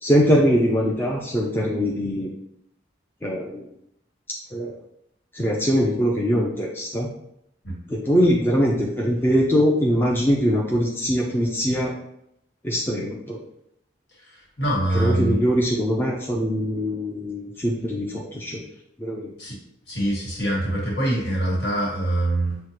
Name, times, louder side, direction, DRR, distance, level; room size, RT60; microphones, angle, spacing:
voice 1, 0.0-2.3 3.2-3.7 4.5-4.7 5.3-7.1 7.9-11.9 12.6-13.4 14.9-18.6 19.0-19.3, equal, 10° left, -3 dB, 0.4 m, -22 dB
voice 2, 14.6-15.4 19.4-19.6 19.9-22.6, right 1 dB, 60° left, -4 dB, 1.5 m, -24 dB
6.4 x 2.1 x 2.9 m, 0.78 s
head